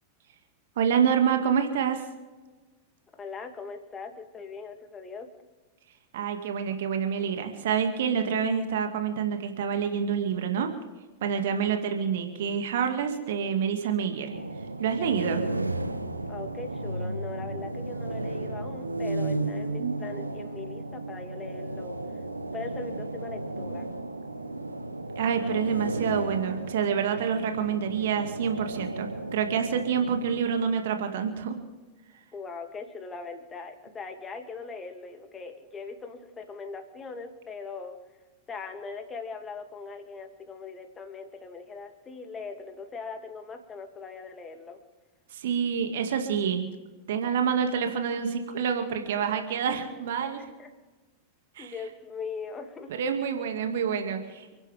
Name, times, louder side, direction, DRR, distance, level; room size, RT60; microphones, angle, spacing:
voice 1, 0.8-2.0 6.1-10.7 11.2-14.3 14.8-15.4 19.8-20.0 25.2-31.6 45.3-46.7 47.1-50.4 51.6-51.7 52.9-54.5, right 7 dB, 55° right, 5 dB, 2.2 m, -27 dB
voice 2, 3.2-5.3 16.3-22.0 22.5-23.9 32.3-38.0 38.5-44.8 50.6-50.7 51.6-52.9, left 4 dB, 20° left, 5 dB, 2.5 m, -40 dB
sound 1, 14.3-30.4, right 2 dB, 85° right, 1.0 m, -34 dB
30.0 x 11.5 x 3.6 m, 1.2 s
figure-of-eight pair, 90°, 0 cm